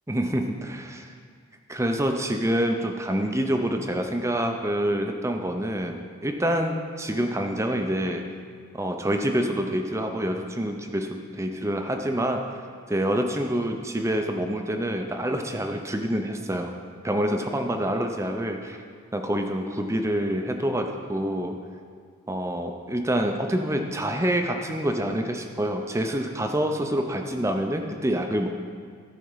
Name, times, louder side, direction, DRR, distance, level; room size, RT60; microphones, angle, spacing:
voice 1, 0.1-1.1 1.7-8.2 8.7-12.4 12.9-16.7 17.0-18.8 19.1-21.6 22.3-28.6, right 1 dB, 15° right, 4 dB, 0.6 m, -27 dB
14.0 x 4.9 x 5.7 m, 2.1 s
head